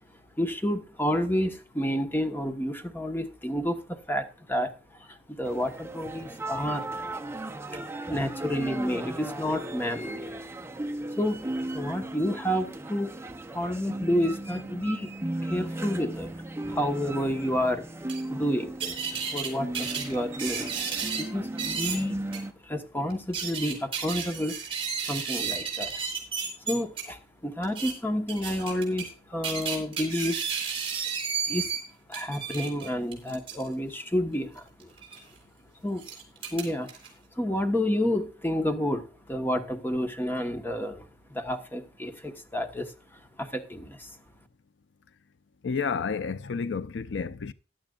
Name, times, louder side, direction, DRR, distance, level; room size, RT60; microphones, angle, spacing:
voice 1, 0.4-6.9 7.7-7.8 8.1-10.4 11.2-13.1 13.5-15.1 15.4-16.3 16.6-17.9 18.3-20.7 21.2-22.2 22.6-24.6 25.0-26.0 26.6-30.4 31.5-31.7 32.1-34.9 35.8-36.1 36.5-36.9 37.4-42.9 43.4-44.2, equal, 10° left, 1.2 m, -30 dB
sound 1, 5.4-22.5, right 1 dB, 15° right, 0.7 m, -36 dB
sound 2, 18.1-18.2 18.8-19.5 19.7-21.2 21.6-22.0 22.3-22.4 23.1-27.0 27.6-27.9 28.3-29.1 29.4-31.8 32.1-33.7 35.0-35.2 36.0-37.1, right 6 dB, 30° right, 4.7 m, -32 dB
voice 2, 45.6-47.5, left 5 dB, 90° left, 0.5 m, -30 dB
16.0 x 11.5 x 2.4 m
head